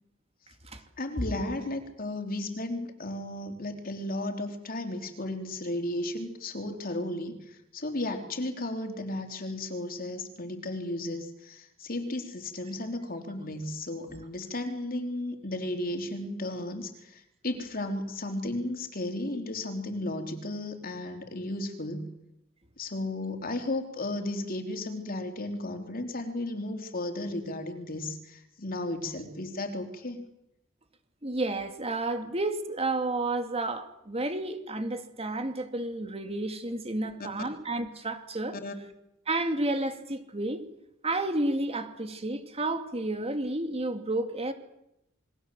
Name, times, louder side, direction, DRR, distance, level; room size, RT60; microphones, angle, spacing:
voice 1, 1.0-22.1 22.8-30.3 37.2-37.3 38.6-38.7, left 1 dB, 45° left, 6 dB, 3.6 m, -34 dB
voice 2, 31.2-38.6 39.3-40.6 41.0-44.5, right 2 dB, 30° right, 7 dB, 2.6 m, -31 dB
28.0 x 23.0 x 7.8 m, 0.83 s
head